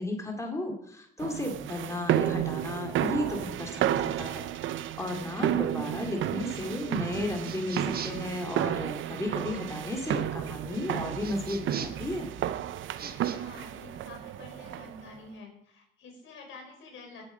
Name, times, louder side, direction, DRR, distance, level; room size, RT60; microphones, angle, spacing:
voice 1, 0.0-4.5 4.7-12.3, left 1 dB, 15° left, 2 dB, 2.4 m, -34 dB
sound 1, 1.2-15.1, right 11 dB, 75° right, 0.7 m, -32 dB
voice 2, 5.1-5.5 13.0-17.3, left 3 dB, 75° left, 2 dB, 5.2 m, -48 dB
sound 2, 7.4-8.3 11.2-12.1 12.9-13.4, right 6 dB, 50° right, 1.3 m, -41 dB
17.0 x 7.8 x 5.1 m, 0.71 s
cardioid pair, 90°, 20 cm